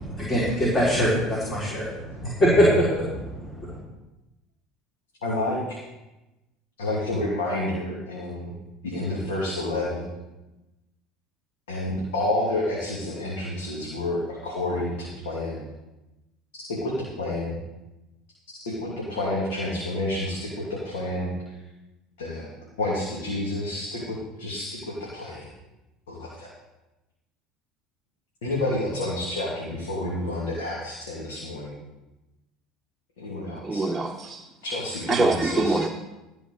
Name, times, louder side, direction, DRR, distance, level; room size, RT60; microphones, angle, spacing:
voice 1, 0.0-3.8, equal, 30° left, -6 dB, 4.2 m, -23 dB
voice 2, 5.2-5.8 6.8-8.5 8.8-10.1 11.7-15.6 16.6-17.6 18.6-21.3 22.2-22.5 22.8-25.5 26.1-26.5 28.4-31.7 33.2-33.9 34.6-35.8, left 1 dB, 80° left, -4 dB, 2.8 m, -29 dB
voice 3, 33.6-34.5 35.1-35.9, right 3 dB, 15° right, 1 dB, 0.9 m, -24 dB
15.0 x 5.3 x 6.7 m, 1.0 s
hypercardioid pair, 75°, 0 cm